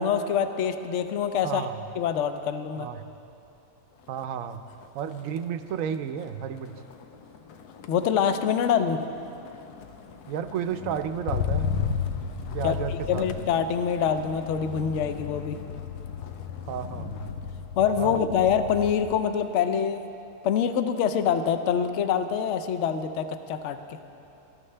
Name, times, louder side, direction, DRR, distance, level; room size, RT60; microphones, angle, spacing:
voice 1, 0.0-1.6 2.0-2.9 7.9-9.0 12.6-12.7 13.1-15.6 17.8-20.0 20.4-24.0, left 7 dB, 60° left, 9 dB, 0.8 m, -25 dB
voice 2, 1.4-1.8 2.8-3.1 4.1-4.6 4.9-6.8 10.3-11.7 12.5-13.3 16.7-17.3 18.0-18.2, right 8 dB, 70° right, 9 dB, 0.9 m, -32 dB
Motor vehicle (road), 4.0-4.4 4.7-19.1 19.5-20.0, left 7 dB, 90° left, 1.3 m, -35 dB
18.5 x 13.5 x 3.3 m, 2.8 s
omnidirectional pair, 1.6 m